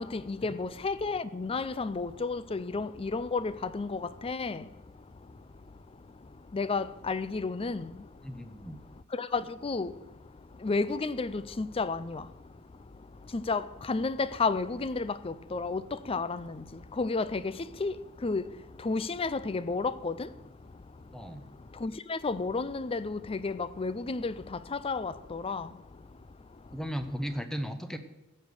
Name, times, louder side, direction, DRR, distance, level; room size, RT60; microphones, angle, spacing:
voice 1, 0.0-4.6 6.5-7.9 9.2-9.9 10.6-12.2 13.3-13.6 13.9-15.8 16.1-16.5 17.0-17.5 17.8-17.9 18.2-18.4 18.8-20.1 21.8-24.3 24.8-25.7, left 4 dB, 25° left, 0.5 m, -31 dB
voice 2, 8.2-8.8 21.1-21.5 26.7-28.0, equal, 5° left, 0.8 m, -36 dB
15.5 x 6.4 x 6.9 m
head